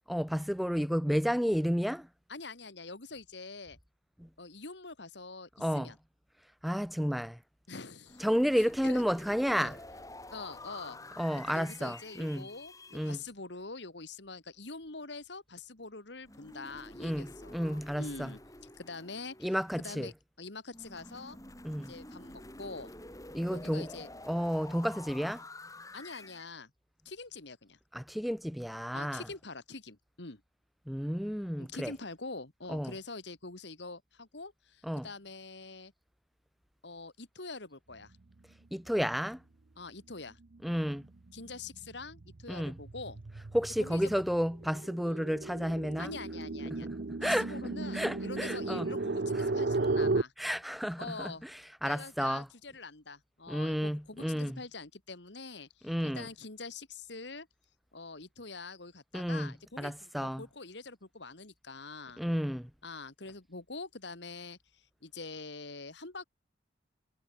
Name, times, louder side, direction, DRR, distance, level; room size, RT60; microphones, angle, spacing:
voice 1, 0.1-2.1 4.2-4.3 5.6-5.9 6.6-7.4 8.2-9.8 11.2-12.5 12.9-13.2 17.0-18.3 19.4-20.1 21.6-21.9 23.3-23.9 24.3-25.4 27.9-29.2 30.9-31.9 32.7-32.9 34.8-35.1 38.7-39.4 40.6-41.0 42.5-42.8 43.5-46.1 46.7-46.9 47.2-47.5 47.9-48.9 49.4-49.5 50.4-52.5 53.5-54.6 55.8-56.3 59.1-60.4 62.2-62.7, equal, ahead, 0.4 m, -31 dB
voice 2, 2.3-3.8 4.4-6.0 7.7-8.3 8.8-9.0 9.6-9.7 10.3-11.0 11.5-18.4 18.8-21.4 21.9-22.9 23.5-24.1 25.9-26.7 27.0-27.8 28.9-30.4 31.6-35.9 36.8-38.1 39.8-40.4 41.3-43.2 43.8-44.2 45.1-45.2 46.0-46.9 47.2-50.3 51.0-51.4 51.8-57.5 57.9-62.2 62.8-66.2, left 3 dB, 70° left, 2.4 m, -45 dB
sound 1, 8.1-13.1 16.3-20.0 20.7-26.5, left 1 dB, 20° left, 6.6 m, -49 dB
sound 2, 40.6-40.9 41.3-50.2, right 3 dB, 60° right, 0.7 m, -35 dB
head